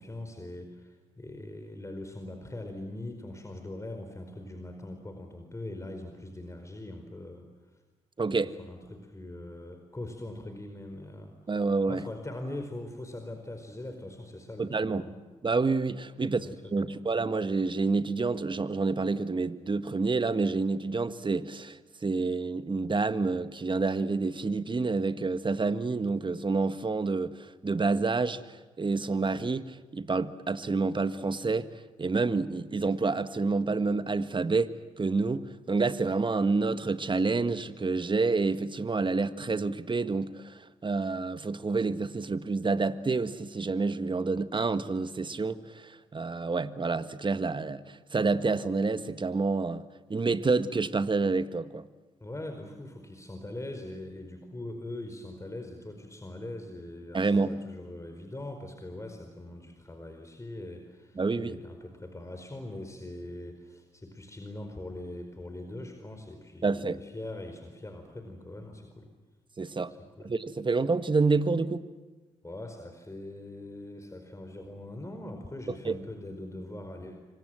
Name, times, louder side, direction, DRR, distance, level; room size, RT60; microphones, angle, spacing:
voice 1, 0.0-7.8 8.2-11.3 11.9-15.2 16.2-17.0 52.2-69.1 69.9-70.3 72.4-77.1, left 1 dB, 20° left, 5 dB, 4.7 m, -42 dB
voice 2, 8.2-8.5 11.5-12.0 14.6-15.0 15.4-31.7 32.0-49.8 50.1-51.9 57.1-57.6 61.2-61.6 66.6-67.0 69.6-69.9 70.2-71.8 75.8-76.0, right 3 dB, 30° right, 12 dB, 1.6 m, -28 dB
28.0 x 25.0 x 7.7 m, 1.3 s
hypercardioid pair, 40°, 15 cm